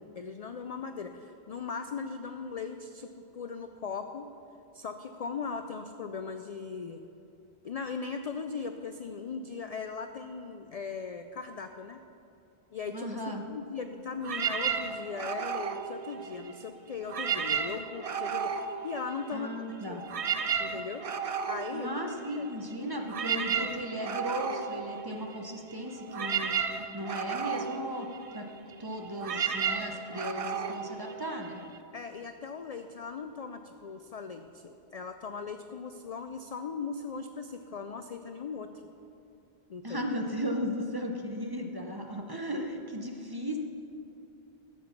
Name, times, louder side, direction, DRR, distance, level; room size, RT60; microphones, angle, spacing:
voice 1, 0.2-4.3 4.7-7.0 7.6-12.0 12.7-19.5 19.8-20.0 20.6-21.1 21.4-21.9 22.3-22.5 31.9-38.7 39.7-40.1, left 5 dB, 55° left, 7 dB, 0.4 m, -39 dB
voice 2, 12.9-13.4 19.3-20.0 21.7-26.5 26.9-28.1 28.3-28.5 28.8-31.6 39.8-43.6, equal, 25° right, 2 dB, 0.8 m, -36 dB
sound 1, 14.2-16.6 17.0-19.6 19.8-31.8, right 7 dB, 45° right, 0.5 m, -34 dB
12.5 x 7.7 x 5.8 m, 2.7 s
omnidirectional pair, 1.1 m